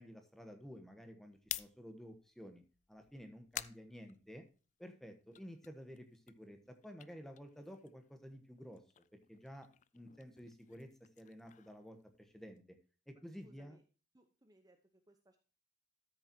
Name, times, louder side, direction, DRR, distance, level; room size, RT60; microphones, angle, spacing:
voice 1, 0.0-2.6 2.9-4.4 4.8-8.8 9.1-9.7 9.9-12.6 13.1-13.8, equal, ahead, 6 dB, 1.1 m, -52 dB
sound 1, 1.3-4.8 5.2-8.2 8.4-12.6, left 12 dB, 35° left, 0.3 m, -50 dB
voice 2, 13.4-13.8 14.1-15.4, right 1 dB, 20° right, 6 dB, 0.8 m, -66 dB
13.0 x 6.5 x 2.8 m, 0.35 s
head